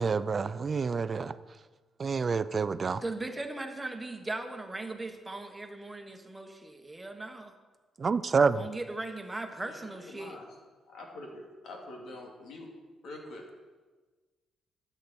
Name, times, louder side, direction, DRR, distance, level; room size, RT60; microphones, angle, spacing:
voice 1, 0.0-1.3 2.0-3.0 8.0-8.6, right 5 dB, 40° right, 15 dB, 0.5 m, -27 dB
voice 2, 3.0-7.5 8.5-10.4, right 2 dB, 15° right, 5 dB, 1.3 m, -38 dB
voice 3, 10.1-10.4 10.9-12.7 13.0-13.4, left 2 dB, 70° left, 0 dB, 2.6 m, -45 dB
12.5 x 8.4 x 4.4 m, 1.3 s
cardioid pair, 90°, 0 cm